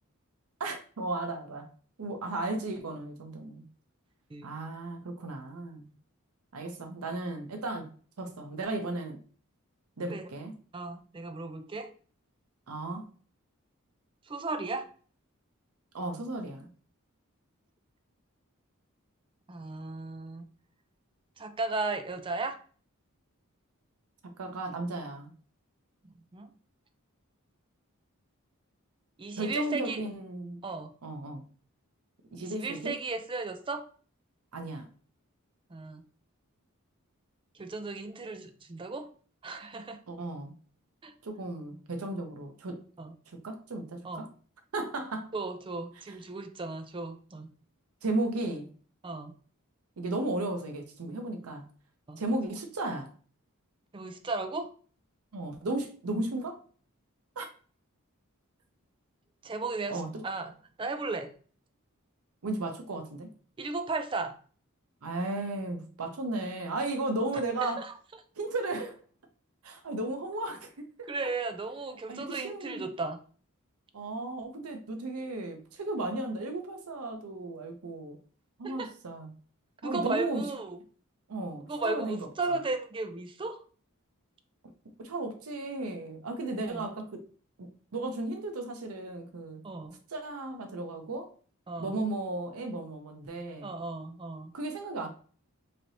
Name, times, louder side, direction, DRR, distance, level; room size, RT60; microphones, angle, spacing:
voice 1, 0.6-1.7 2.0-3.7 4.4-5.9 6.5-7.9 8.2-9.2 10.0-10.5 12.7-13.1 15.9-16.7 24.2-25.3 29.4-30.6 31.0-31.5 32.3-33.0 34.5-34.9 40.1-40.5 41.2-42.8 43.3-44.3 44.7-45.3 46.1-46.2 48.0-48.7 50.0-51.7 52.2-53.1 55.3-56.6 57.4-57.5 59.9-60.2 62.4-63.3 65.0-67.9 68.4-69.0 69.6-71.3 72.1-72.9 73.9-78.2 78.6-79.3 79.8-80.5 81.3-82.2 84.6-84.7 85.0-87.3 87.6-89.6 90.1-91.3 91.8-93.7 94.5-95.1, right 2 dB, 85° right, 0.7 m, -35 dB
voice 2, 10.7-11.9 14.3-14.9 19.5-20.5 21.4-22.6 26.0-26.5 29.2-30.0 30.6-30.9 32.4-33.9 35.7-36.0 37.6-39.1 39.4-40.0 41.0-41.1 43.0-43.1 44.0-44.3 45.3-47.5 49.0-49.3 52.1-52.2 53.9-54.7 59.4-60.5 60.8-61.3 63.6-64.4 67.6-67.9 71.1-73.2 78.6-78.9 79.8-80.8 81.7-83.6 86.6-86.9 89.6-90.0 91.7-92.0 93.6-94.5, right 3 dB, 25° right, 0.4 m, -35 dB
3.2 x 2.8 x 3.9 m
head